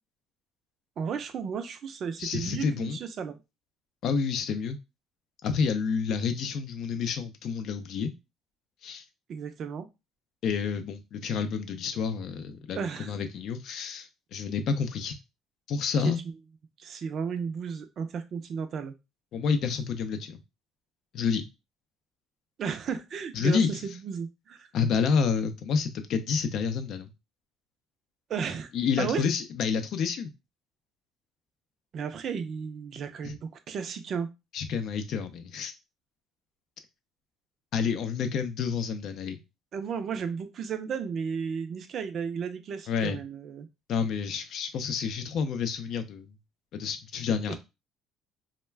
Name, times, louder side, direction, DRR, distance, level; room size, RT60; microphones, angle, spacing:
voice 1, 1.0-3.4 9.3-9.9 12.7-13.1 16.8-18.9 22.6-24.7 28.3-28.7 29.0-29.2 31.9-34.3 39.7-43.7 47.5-47.6, right 6 dB, 50° right, 0.4 m, -34 dB
voice 2, 2.2-3.0 4.0-4.8 5.4-8.1 8.8-9.0 10.4-15.2 15.7-16.2 19.3-20.4 21.1-21.4 23.3-23.9 24.7-27.1 28.7-30.3 33.2-33.4 34.5-35.7 37.7-39.4 42.9-43.2 43.9-46.3 46.7-47.6, left 6 dB, 65° left, 0.4 m, -29 dB
2.3 x 2.1 x 3.2 m
cardioid pair, 105°, 0 cm